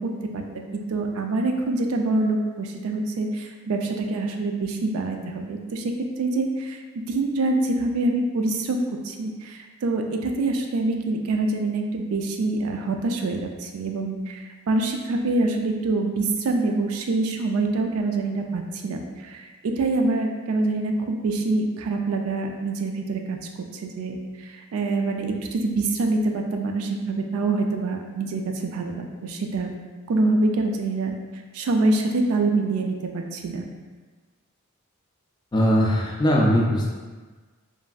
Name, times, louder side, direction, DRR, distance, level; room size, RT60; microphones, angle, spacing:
voice 1, 0.0-23.4 23.7-29.7 30.1-31.1 31.5-33.6, right 2 dB, 85° right, 3 dB, 0.3 m, -25 dB
voice 2, 35.5-36.9, equal, 20° left, -2 dB, 0.3 m, -20 dB
3.1 x 2.5 x 2.2 m, 1.4 s
head